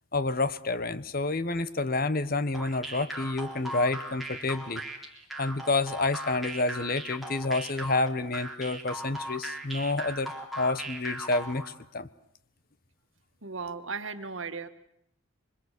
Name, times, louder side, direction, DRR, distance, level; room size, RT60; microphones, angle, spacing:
voice 1, 0.1-4.8 5.4-11.6 11.9-12.1, left 3 dB, 45° left, 15 dB, 1.1 m, -29 dB
sound 1, 2.5-11.7, right 1 dB, ahead, 3.5 m, -38 dB
voice 2, 13.4-14.7, right 4 dB, 70° right, 10 dB, 1.8 m, -36 dB
26.0 x 24.5 x 8.4 m, 0.72 s
head